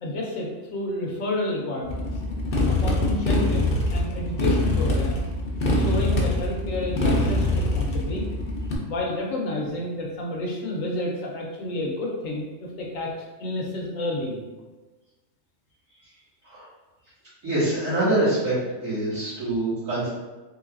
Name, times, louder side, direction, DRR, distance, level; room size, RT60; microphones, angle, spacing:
voice 1, 0.0-2.1 2.7-5.2 5.6-8.2 8.9-14.4, left 1 dB, 75° left, -1 dB, 1.1 m, -30 dB
Motorcycle, 1.8-8.7, left 2 dB, 50° left, 0.8 m, -24 dB
voice 2, 17.4-18.6 18.8-20.1, right 2 dB, 75° right, -16 dB, 2.0 m, -25 dB
3.9 x 3.4 x 2.4 m, 1.2 s
omnidirectional pair, 1.4 m